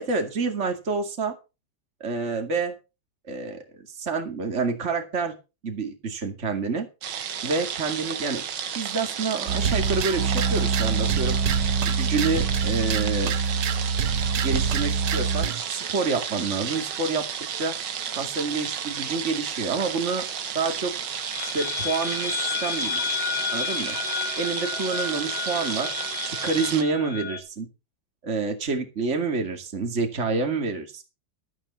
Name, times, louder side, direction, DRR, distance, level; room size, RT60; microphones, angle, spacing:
voice 1, 0.0-1.3 2.0-2.8 3.3-3.6 3.9-5.3 5.6-6.9 7.4-8.4 8.7-11.4 11.8-13.3 14.4-17.2 17.6-17.7 18.1-20.2 20.5-20.9 21.4-23.2 23.5-24.0 24.4-25.9 26.4-27.7 28.2-31.0, right 4 dB, 40° right, 4 dB, 2.6 m, -28 dB
sound 1, 7.0-26.8, right 8 dB, 90° right, 2.0 m, -32 dB
sound 2, 9.5-15.6, right 5 dB, 70° right, 1.5 m, -25 dB
sound 3, 20.9-27.4, left 7 dB, 60° left, 2.4 m, -31 dB
13.0 x 12.5 x 4.3 m, 0.29 s
omnidirectional pair, 1.9 m